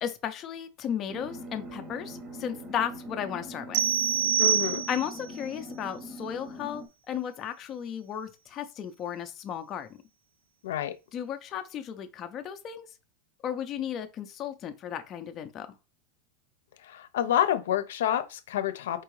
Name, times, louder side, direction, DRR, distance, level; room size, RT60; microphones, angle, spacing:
voice 1, 0.0-3.8 4.9-9.9 11.1-12.9 13.4-15.7, left 9 dB, 20° left, 0.5 m, -35 dB
sound 1, 1.1-6.9, equal, 20° right, 0.7 m, -42 dB
sound 2, 3.7-5.3, right 8 dB, 50° right, 0.3 m, -26 dB
voice 2, 4.4-4.9 10.6-11.0 16.8-19.0, left 11 dB, 75° left, 0.7 m, -28 dB
4.5 x 3.5 x 3.2 m
supercardioid pair, 175°, 0 cm